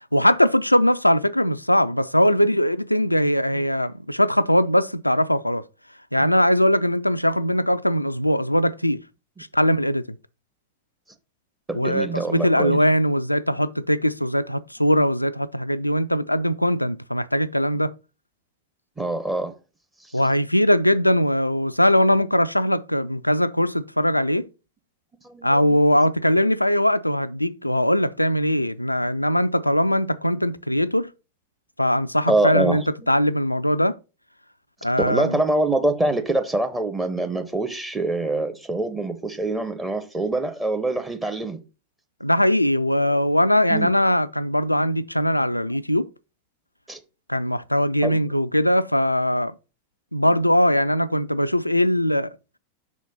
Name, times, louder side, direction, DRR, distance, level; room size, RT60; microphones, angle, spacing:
voice 1, 0.1-5.6 6.1-9.0 9.5-10.1 11.7-17.9 20.1-24.5 25.4-31.1 31.8-34.0 34.8-35.4 42.2-46.1 47.3-49.5 50.1-52.3, equal, 85° left, 0.3 m, -21 dB
voice 2, 11.7-12.8 19.0-19.5 20.0-20.1 25.2-25.7 32.3-32.9 35.1-41.6 43.7-43.9 46.9-47.0 48.0-48.2, right 2 dB, 10° right, 0.8 m, -25 dB
6.2 x 4.1 x 5.5 m
figure-of-eight pair, 90°, 0 cm